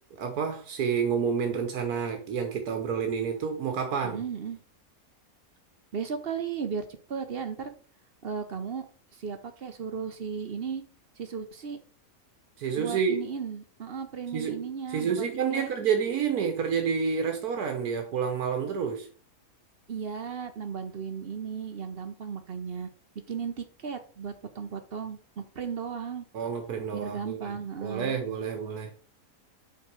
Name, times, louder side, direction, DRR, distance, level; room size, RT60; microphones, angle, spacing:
voice 1, 0.2-4.2 12.6-13.2 14.3-14.6 14.9-19.1 26.3-28.9, right 6 dB, 80° right, 1.5 m, -29 dB
voice 2, 4.0-4.6 5.9-7.7 8.2-8.9 9.1-10.8 11.2-11.8 12.8-15.2 15.5-15.7 19.9-22.9 23.3-26.3 26.9-28.2, right 6 dB, 50° right, 0.8 m, -35 dB
5.8 x 4.6 x 6.1 m
omnidirectional pair, 1.6 m